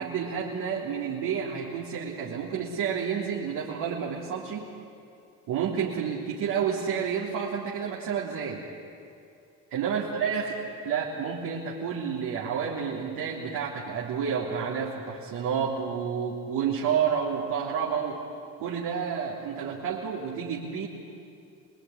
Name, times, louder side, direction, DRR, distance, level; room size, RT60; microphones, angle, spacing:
voice 1, 0.0-4.7 5.5-8.6 9.7-10.6 10.8-18.2 18.6-20.9, right 7 dB, 80° right, -5 dB, 3.5 m, -30 dB
26.0 x 20.5 x 10.0 m, 2.5 s
supercardioid pair, 70°, 36 cm